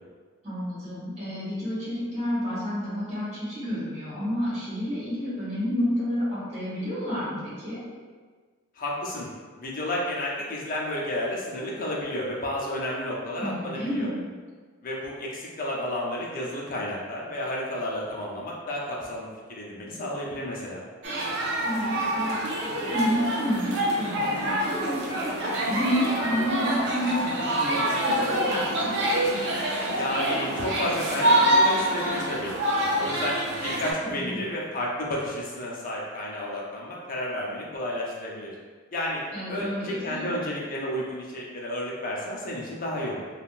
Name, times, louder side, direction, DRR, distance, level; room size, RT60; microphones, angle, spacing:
voice 1, 0.4-7.8 13.4-14.2 21.6-28.9 34.0-34.4 39.3-40.3, equal, 35° right, -9 dB, 1.4 m, -30 dB
voice 2, 8.8-9.3 9.6-14.1 14.8-20.8 29.9-32.6 33.0-38.5 38.9-39.2 39.5-43.2, left 1 dB, 40° left, -4 dB, 0.6 m, -31 dB
sound 1, 21.0-33.9, right 1 dB, 60° right, 0.6 m, -26 dB
3.5 x 2.3 x 2.4 m, 1.5 s
head